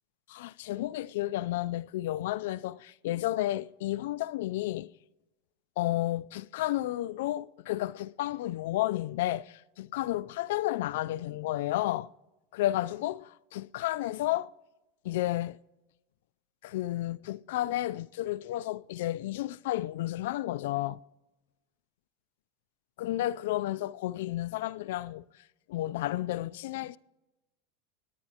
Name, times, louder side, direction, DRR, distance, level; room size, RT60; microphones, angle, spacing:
voice 1, 0.3-4.9 5.8-12.1 12.5-14.5 15.1-15.6 16.6-21.0 23.0-25.2 25.7-27.0, left 15 dB, 75° left, 0.3 m, -32 dB
24.5 x 9.1 x 2.8 m
supercardioid pair, 140°, 0 cm